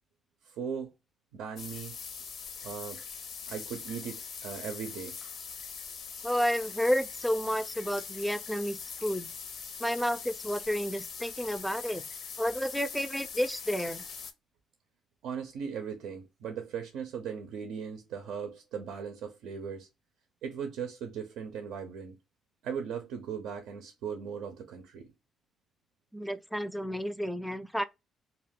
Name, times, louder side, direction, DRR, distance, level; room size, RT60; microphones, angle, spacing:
voice 1, 0.4-0.9 1.3-2.0 2.6-3.0 3.5-5.2 15.2-19.9 20.4-22.2 22.6-25.1, right 7 dB, 90° right, 0.5 m, -38 dB
sound 1, 1.6-14.3, left 6 dB, 70° left, 0.5 m, -42 dB
voice 2, 6.2-9.3 9.8-12.0 12.4-14.0 26.1-27.8, equal, ahead, 0.3 m, -31 dB
2.3 x 2.1 x 3.3 m
cardioid pair, 90°, 0 cm